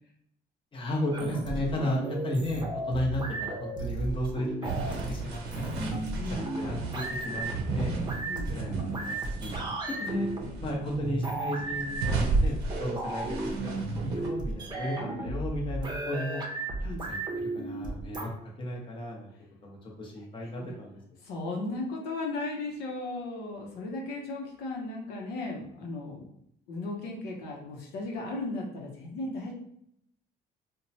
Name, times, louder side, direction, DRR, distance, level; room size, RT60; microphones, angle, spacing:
voice 1, 0.7-6.0 6.3-9.5 9.8-10.3 10.6-16.4 16.8-18.3 18.6-19.3 19.6-21.2, equal, 30° left, -2 dB, 0.8 m, -34 dB
sound 1, 1.1-18.2, right 2 dB, 25° right, 0.6 m, -35 dB
sound 2, 4.6-9.7 10.0-10.9 11.4-14.3, right 3 dB, 85° right, 0.6 m, -33 dB
voice 2, 6.2-6.5 8.3-8.5 16.8-17.0 20.6-20.7 21.2-26.3 26.7-29.5, left 2 dB, 85° left, -1 dB, 0.7 m, -36 dB
2.9 x 2.1 x 2.7 m, 0.73 s
cardioid pair, 110°, 17 cm